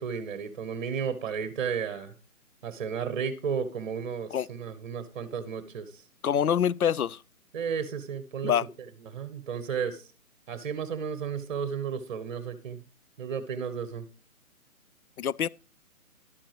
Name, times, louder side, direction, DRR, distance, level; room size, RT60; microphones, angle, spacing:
voice 1, 0.0-2.1 2.6-6.0 7.5-8.5 9.0-10.1 10.5-12.8 13.2-14.1, right 6 dB, 35° right, 1.1 m, -33 dB
voice 2, 6.2-7.2 8.4-8.7 15.2-15.5, left 8 dB, 75° left, 0.6 m, -25 dB
12.0 x 8.7 x 3.0 m
figure-of-eight pair, 140°, 43 cm